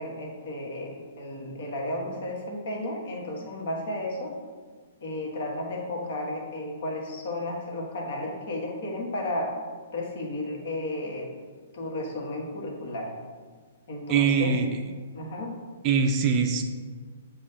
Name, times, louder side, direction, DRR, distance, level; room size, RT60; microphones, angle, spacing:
voice 1, 0.0-4.3 5.0-9.5 9.9-11.3 11.7-13.1 13.9-14.6 15.1-15.6, left 1 dB, 60° left, -2 dB, 1.6 m, -33 dB
voice 2, 14.1-14.7 15.8-16.6, right 6 dB, 30° right, 4 dB, 0.5 m, -22 dB
7.4 x 2.5 x 5.6 m, 1.5 s
hypercardioid pair, 155°, 0 cm